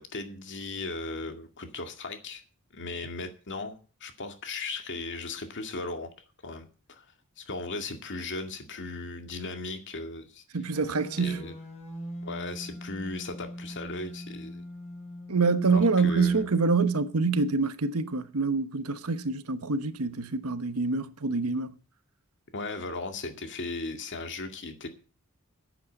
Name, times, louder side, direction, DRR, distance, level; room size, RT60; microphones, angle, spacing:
voice 1, 0.0-2.4 2.7-6.1 6.4-7.1 7.4-10.4 11.2-11.6 12.2-14.6 15.7-16.5 22.5-24.9, left 3 dB, 55° left, 2.1 m, -37 dB
voice 2, 10.5-11.4 15.3-21.7, right 4 dB, 90° right, 1.1 m, -26 dB
sound 1, 10.7-16.8, left 1 dB, 30° left, 5.4 m, -42 dB
10.0 x 8.5 x 7.8 m
head